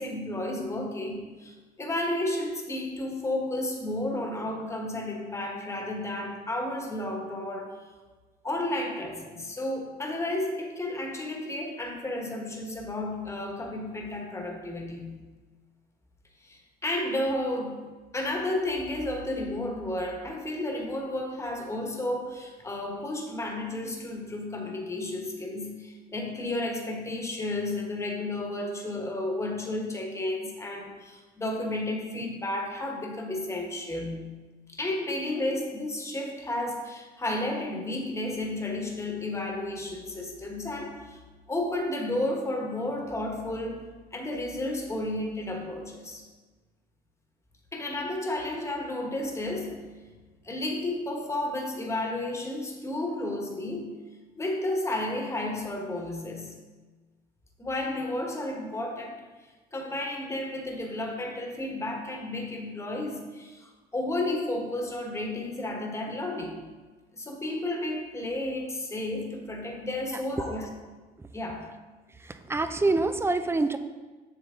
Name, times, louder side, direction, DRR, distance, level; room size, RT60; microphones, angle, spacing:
voice 1, 0.0-7.8 8.4-15.3 16.4-34.4 34.7-41.2 41.5-46.2 47.7-49.9 50.4-54.0 54.4-56.6 57.6-59.2 59.7-66.6 67.1-70.7 71.3-71.7, left 1 dB, 15° left, 2 dB, 1.3 m, -32 dB
voice 2, 72.2-73.8, right 3 dB, 15° right, 10 dB, 0.5 m, -26 dB
7.5 x 6.8 x 3.8 m, 1.3 s
cardioid pair, 110°, 17 cm